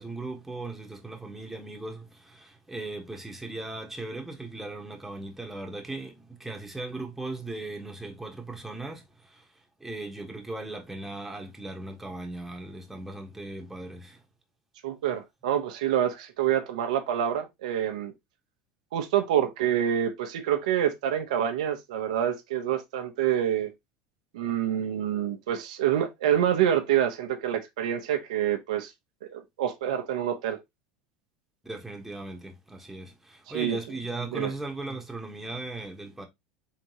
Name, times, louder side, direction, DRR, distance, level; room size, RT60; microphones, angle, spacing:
voice 1, 0.0-14.2 31.6-36.2, right 2 dB, 5° right, 1.4 m, -38 dB
voice 2, 14.8-18.1 18.9-23.7 24.3-28.9 29.3-30.6 33.5-33.8 34.3-34.5, right 10 dB, 90° right, 0.9 m, -27 dB
4.4 x 3.8 x 2.9 m
supercardioid pair, 110°, 4 cm